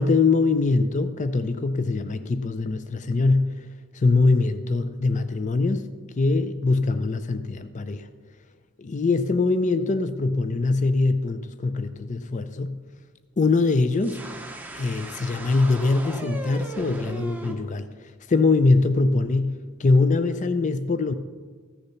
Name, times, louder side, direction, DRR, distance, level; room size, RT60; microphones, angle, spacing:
voice 1, 0.0-3.7 3.9-5.9 6.1-8.1 8.8-12.8 13.4-14.2 14.7-21.1, left 3 dB, 35° left, 11 dB, 0.4 m, -23 dB
sound 1, 14.0-17.5, right 1 dB, 10° right, 0.9 m, -37 dB
14.0 x 6.8 x 5.7 m, 1.5 s
head